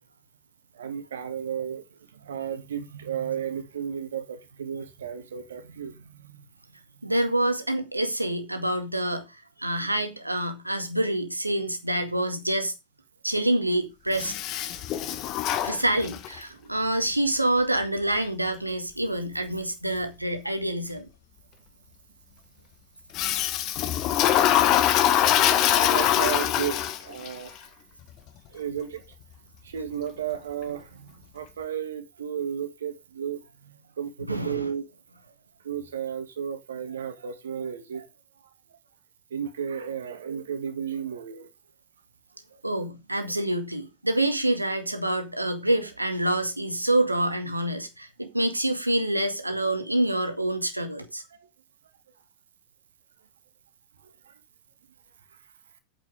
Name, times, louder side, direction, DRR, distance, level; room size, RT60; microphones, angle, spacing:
voice 1, 0.7-1.8 2.1-6.4 14.7-15.1 16.5-16.7 25.7-27.7 28.5-29.0 29.6-34.9 35.6-38.1 39.3-41.5 42.5-42.6 54.0-54.3, right 8 dB, 65° right, 2.2 m, -34 dB
voice 2, 7.0-12.7 13.2-14.4 15.6-21.1 34.3-34.7 42.6-51.2, right 1 dB, 85° right, 1.9 m, -27 dB
Toilet flush, 14.1-16.4 23.1-27.3, left 11 dB, 35° left, 1.2 m, -23 dB
8.9 x 7.5 x 5.1 m
figure-of-eight pair, 90°, 0 cm